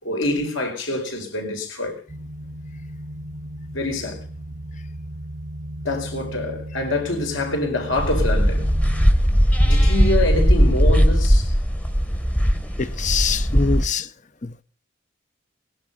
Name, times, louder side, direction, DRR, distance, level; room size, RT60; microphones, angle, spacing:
voice 1, 0.0-2.0 3.7-4.2 5.8-8.7 9.6-11.5, left 2 dB, 75° left, 4.7 m, -25 dB
sound 1, 2.1-9.1, right 1 dB, 35° right, 0.6 m, -35 dB
sound 2, 7.9-13.9, equal, 5° left, 1.0 m, -18 dB
voice 2, 12.8-14.1 14.4-14.6, left 5 dB, 35° left, 0.6 m, -24 dB
19.5 x 11.0 x 5.4 m
head